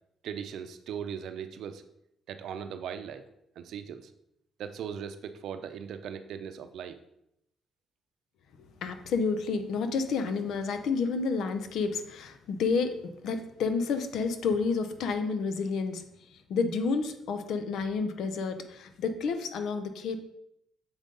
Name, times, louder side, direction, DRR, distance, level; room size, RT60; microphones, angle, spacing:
voice 1, 0.2-1.8 2.3-3.2 3.6-4.1 4.6-7.0, right 8 dB, 75° right, 9 dB, 0.6 m, -39 dB
voice 2, 8.8-16.0 16.3-20.2, left 4 dB, 75° left, 8 dB, 0.7 m, -30 dB
7.1 x 5.3 x 3.9 m, 0.79 s
cardioid pair, 90°, 0 cm